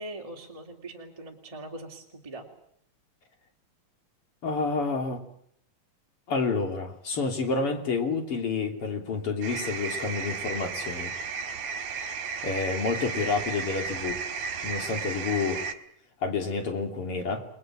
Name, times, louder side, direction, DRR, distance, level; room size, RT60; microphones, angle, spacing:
voice 1, 0.0-2.4, right 2 dB, 10° right, 0 dB, 2.4 m, -41 dB
voice 2, 4.4-5.2 6.3-11.1 11.9-12.0 12.4-14.2 14.6-15.7 16.2-17.5, left 4 dB, 40° left, 4 dB, 3.8 m, -29 dB
sound 1, 9.4-15.7, right 5 dB, 60° right, 2.9 m, -34 dB
30.0 x 21.0 x 7.5 m, 0.67 s
omnidirectional pair, 3.9 m